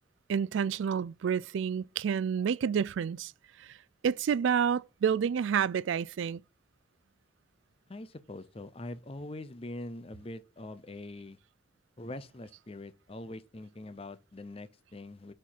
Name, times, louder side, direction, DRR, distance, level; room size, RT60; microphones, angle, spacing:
voice 1, 0.3-3.3 3.6-3.7 4.0-6.4, right 7 dB, 75° right, 0.3 m, -29 dB
voice 2, 7.9-11.4 12.0-15.3, left 2 dB, 30° left, 0.6 m, -43 dB
6.9 x 4.5 x 5.6 m
head